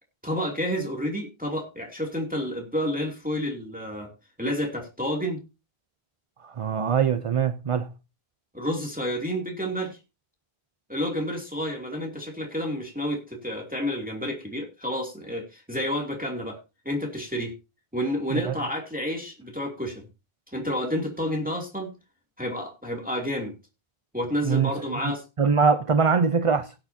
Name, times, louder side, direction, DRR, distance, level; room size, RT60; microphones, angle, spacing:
voice 1, 0.2-4.1 4.4-5.4 8.5-10.0 10.9-16.6 16.8-17.5 17.9-20.1 20.5-21.9 22.4-23.5 24.1-25.2, equal, 10° right, 2.7 m, -30 dB
voice 2, 6.4-7.9 18.3-18.5 24.4-26.7, right 6 dB, 35° right, 0.7 m, -23 dB
18.0 x 8.8 x 2.8 m
omnidirectional pair, 1.0 m